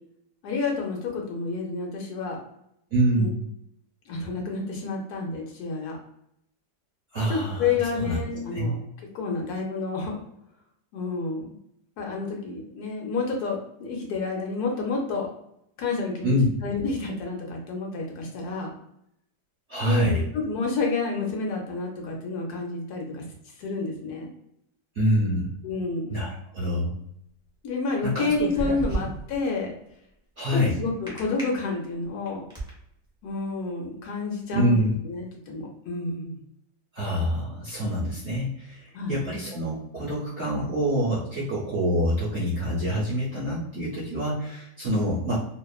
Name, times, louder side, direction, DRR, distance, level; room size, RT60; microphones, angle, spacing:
voice 1, 0.4-2.4 3.1-3.3 4.1-6.0 7.2-8.8 9.1-10.1 10.9-11.6 12.0-15.3 15.8-16.4 16.6-18.7 19.8-23.2 23.6-24.3 25.6-26.2 27.6-29.7 30.5-32.5 33.2-36.4 38.9-39.2, left 4 dB, 70° left, 0 dB, 1.1 m, -29 dB
voice 2, 2.9-3.5 7.1-8.2 8.5-8.7 16.2-16.6 19.7-20.2 24.9-25.5 26.1-26.9 28.0-28.2 30.4-30.7 34.5-35.0 36.9-45.4, equal, 60° right, -7 dB, 0.7 m, -26 dB
sound 1, 28.1-29.4 31.1-31.4 32.0-32.7, right 2 dB, 5° right, 0.5 m, -31 dB
2.8 x 2.1 x 2.3 m, 0.75 s
omnidirectional pair, 1.8 m